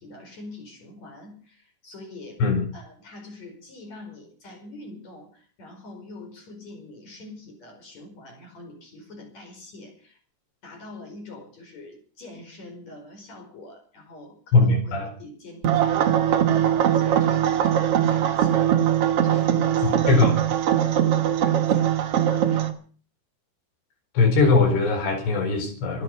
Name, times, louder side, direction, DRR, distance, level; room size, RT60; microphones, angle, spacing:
voice 1, 0.0-2.4 2.7-10.2 10.6-20.2 20.9-22.8, left 2 dB, 40° left, 4 dB, 6.0 m, -44 dB
voice 2, 14.5-15.1 19.8-20.4 24.1-26.0, left 3 dB, 80° left, 4 dB, 6.5 m, -20 dB
sound 1, 15.6-22.7, right 10 dB, 85° right, 1.3 m, -21 dB
25.5 x 9.9 x 5.6 m, 0.42 s
omnidirectional pair, 4.7 m